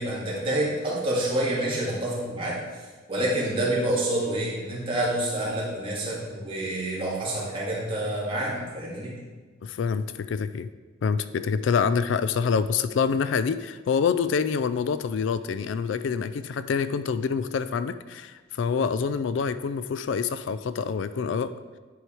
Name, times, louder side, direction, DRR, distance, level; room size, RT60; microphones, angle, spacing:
voice 1, 0.0-2.5 3.1-9.1, right 1 dB, 25° right, -5 dB, 2.0 m, -27 dB
voice 2, 9.6-10.7 11.0-21.5, left 6 dB, 70° left, 13 dB, 0.3 m, -26 dB
9.5 x 4.8 x 4.5 m, 1.3 s
head